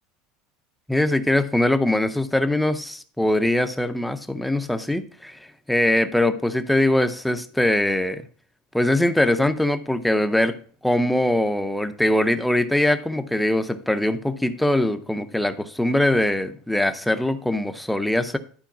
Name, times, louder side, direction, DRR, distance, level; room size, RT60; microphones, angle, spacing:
voice 1, 0.9-5.4 5.7-8.2 8.7-10.6 10.8-18.4, left 1 dB, ahead, 0.5 m, -22 dB
11.5 x 4.6 x 5.9 m
cardioid pair, 180°, 0 cm